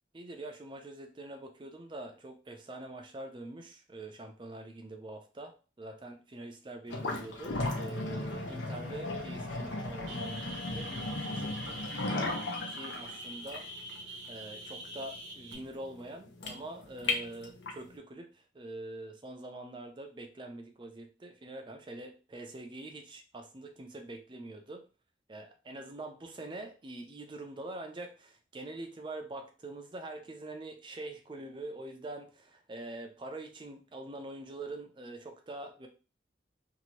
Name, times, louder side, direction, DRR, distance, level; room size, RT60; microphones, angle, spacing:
voice 1, 0.1-11.8 12.2-13.7 14.3-18.3 18.5-24.8 25.3-35.9, right 2 dB, 25° right, 4 dB, 0.4 m, -44 dB
sound 1, 6.9-17.9, left 2 dB, 75° left, 0.6 m, -36 dB
sound 2, 10.1-15.5, right 1 dB, 75° right, 0.7 m, -44 dB
2.8 x 2.6 x 2.9 m, 0.35 s
head